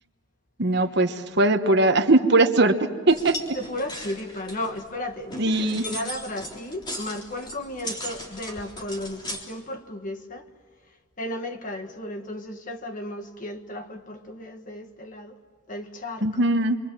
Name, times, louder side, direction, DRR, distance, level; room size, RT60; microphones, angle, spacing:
voice 1, 0.6-2.8 3.1-3.6 5.4-5.8 16.2-16.8, right 2 dB, 55° right, 1.3 m, -20 dB
sound 1, 3.1-9.4, equal, 20° left, 3.6 m, -38 dB
voice 2, 3.5-10.5 11.2-15.4 15.7-16.5, left 1 dB, 40° left, 1.7 m, -34 dB
28.5 x 24.5 x 7.6 m
head